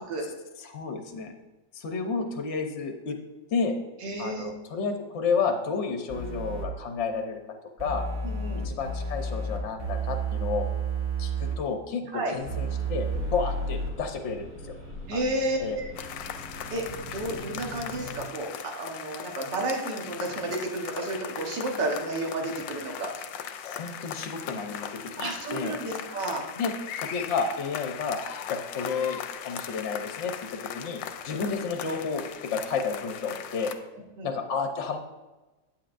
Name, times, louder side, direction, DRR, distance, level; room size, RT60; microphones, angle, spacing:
voice 1, 0.6-1.3 1.7-3.2 3.5-3.7 4.2-7.4 7.8-8.0 8.6-10.7 11.2-14.8 15.1-15.2 15.6-15.8 23.6-25.7 26.6-26.7 27.0-28.2 28.5-30.3 30.7-33.7 34.2-35.0, left 5 dB, 55° left, 3 dB, 0.8 m, -31 dB
voice 2, 4.0-4.5 8.2-8.7 12.1-12.3 15.1-15.9 16.7-16.8 17.1-23.1 25.2-26.5 34.2-34.3, right 2 dB, 75° right, 1 dB, 1.9 m, -31 dB
sound 1, 6.1-6.6 7.8-11.5 12.5-13.9, right 3 dB, 20° right, 0.7 m, -31 dB
sound 2, 12.3-18.2, equal, 45° right, 3.1 m, -43 dB
sound 3, 16.0-33.7, left 9 dB, 85° left, 1.3 m, -39 dB
8.8 x 7.5 x 2.5 m, 1.1 s
omnidirectional pair, 1.9 m